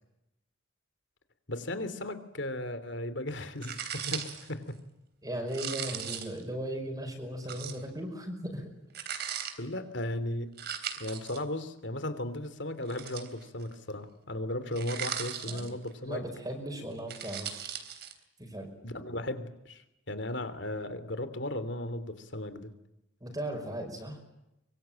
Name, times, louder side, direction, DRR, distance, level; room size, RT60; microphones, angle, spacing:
voice 1, 1.5-4.6 9.6-10.5 11.0-16.2 18.8-22.7, left 1 dB, 65° left, 12 dB, 3.1 m, -36 dB
sound 1, 3.6-4.5 5.5-6.4 7.5-7.8 8.9-9.5 10.6-11.4 12.8-13.7 14.7-15.9 16.9-18.1, right 8 dB, 55° right, 3.5 m, -38 dB
voice 2, 5.2-8.7 15.5-15.8 16.0-17.9 18.4-18.7 23.2-24.2, right 1 dB, 20° right, 2 dB, 5.4 m, -37 dB
25.0 x 24.0 x 8.9 m, 0.88 s
head